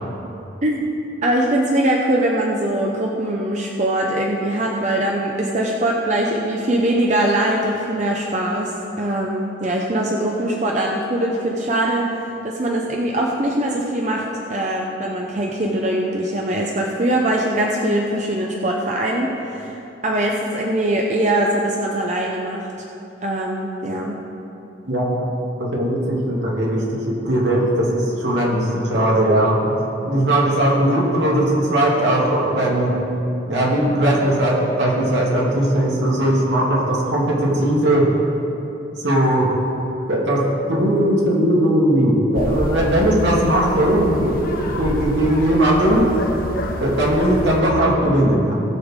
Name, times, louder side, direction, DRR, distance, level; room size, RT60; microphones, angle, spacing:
voice 1, 1.2-12.0 12.4-19.8 20.0-22.7 23.2-24.2, right 1 dB, 40° right, -1 dB, 0.8 m, -22 dB
voice 2, 24.8-25.2 25.5-29.7 30.0-33.0 33.5-38.1 39.0-39.5 40.1-46.2 46.8-48.5, right 1 dB, 80° right, -4 dB, 2.4 m, -18 dB
sound 1, 42.3-47.6, left 1 dB, 50° left, 1.0 m, -28 dB
19.0 x 6.9 x 3.7 m, 3.0 s
head